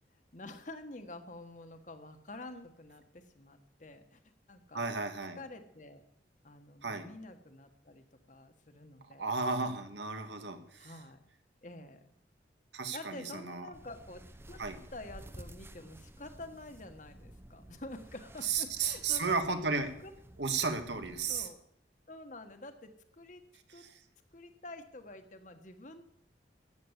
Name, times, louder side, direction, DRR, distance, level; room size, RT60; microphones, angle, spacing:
voice 1, 0.1-4.8 5.3-6.0 6.4-9.4 10.8-11.2 11.6-12.1 12.9-14.6 14.9-19.4 20.0-20.1 21.3-21.6 22.1-23.4 23.7-23.8 24.3-26.0, left 2 dB, 45° left, 7 dB, 1.5 m, -48 dB
voice 2, 4.7-5.4 6.8-7.1 9.2-10.9 12.7-13.7 14.6-14.8 18.4-19.9 20.4-21.5 23.8-23.9, right 4 dB, 80° right, 7 dB, 1.8 m, -34 dB
sound 1, 13.7-21.5, right 1 dB, 15° right, 0.7 m, -53 dB
14.0 x 8.5 x 8.2 m, 0.74 s
head